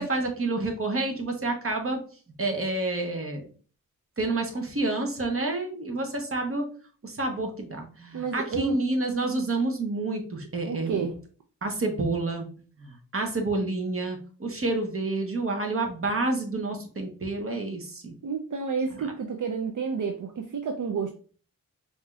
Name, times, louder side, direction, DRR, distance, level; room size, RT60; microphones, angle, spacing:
voice 1, 0.0-2.0 2.4-3.5 4.2-6.6 7.0-11.1 11.6-12.5 12.8-18.1 19.0-19.1, right 2 dB, 40° right, 3 dB, 1.0 m, -29 dB
voice 2, 8.1-8.8 10.6-11.1 18.2-21.1, right 5 dB, 65° right, 3 dB, 0.5 m, -30 dB
4.8 x 2.7 x 2.3 m, 0.41 s
wide cardioid pair, 75°, 33 cm